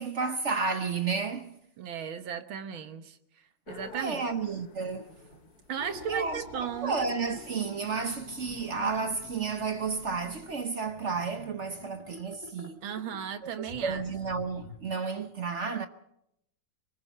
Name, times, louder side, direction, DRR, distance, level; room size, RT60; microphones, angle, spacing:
voice 1, 0.0-1.6 3.9-5.1 6.1-12.8 13.4-15.9, right 5 dB, 50° right, 0.9 m, -32 dB
voice 2, 1.8-3.2 3.7-4.3 5.7-7.0 12.8-14.0, right 8 dB, 80° right, 2.0 m, -35 dB
sound 1, 3.7-10.7, left 6 dB, 50° left, 1.6 m, -50 dB
sound 2, 4.9-14.8, left 2 dB, 20° left, 3.8 m, -49 dB
24.0 x 20.5 x 5.5 m
omnidirectional pair, 2.2 m